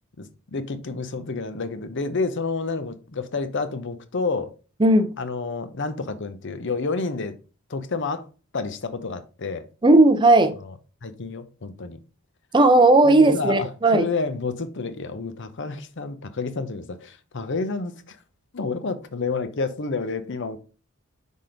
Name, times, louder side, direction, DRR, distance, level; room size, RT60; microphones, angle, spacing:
voice 1, 0.2-4.5 5.2-7.3 7.7-8.3 8.5-9.7 10.6-10.7 11.0-12.0 13.0-18.2 18.5-20.6, left 4 dB, 60° left, 0.8 m, -29 dB
voice 2, 9.8-10.5 12.5-14.1, right 2 dB, 20° right, 0.6 m, -16 dB
5.9 x 3.7 x 4.9 m
head